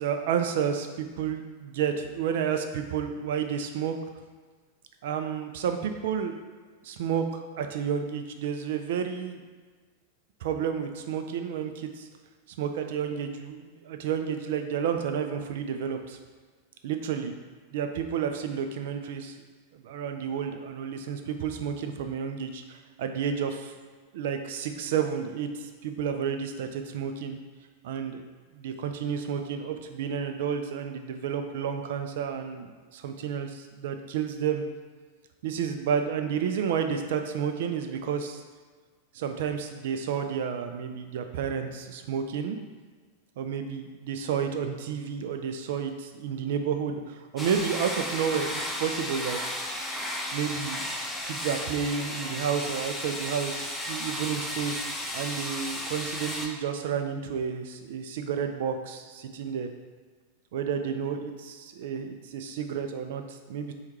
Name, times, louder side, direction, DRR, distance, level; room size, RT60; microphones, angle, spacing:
voice 1, 0.0-3.9 5.0-6.4 6.8-9.4 10.4-12.1 12.6-16.2 16.8-17.4 17.7-19.3 19.7-23.7 24.1-27.4 27.8-28.2 28.5-34.6 35.4-38.4 39.1-42.6 43.4-49.4 50.3-50.8 51.2-54.8 55.1-59.7 60.5-63.7, right 7 dB, 55° right, 6 dB, 0.4 m, -31 dB
sound 1, 47.4-56.5, left 1 dB, 5° left, 0.6 m, -34 dB
4.4 x 2.4 x 4.6 m, 1.5 s
figure-of-eight pair, 90°, 0 cm